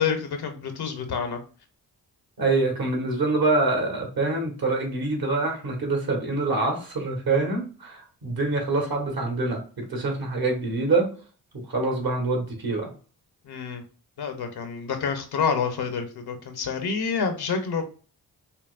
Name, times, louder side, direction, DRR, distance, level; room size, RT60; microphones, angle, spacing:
voice 1, 0.0-1.4 13.4-13.8 14.2-17.8, left 6 dB, 70° left, 6 dB, 0.9 m, -28 dB
voice 2, 2.4-11.1 11.7-12.9, right 3 dB, 65° right, 1 dB, 1.7 m, -25 dB
5.6 x 2.2 x 2.5 m, 0.38 s
cardioid pair, 50°, 39 cm